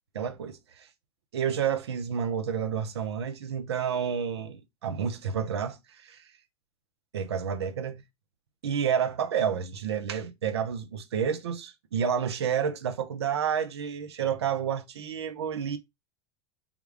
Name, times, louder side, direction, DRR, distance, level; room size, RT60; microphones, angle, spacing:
voice 1, 0.1-0.9 1.3-6.2 7.1-8.0 8.6-15.8, right 7 dB, 80° right, 0.5 m, -30 dB
3.5 x 2.3 x 3.4 m
hypercardioid pair, 90°, 14 cm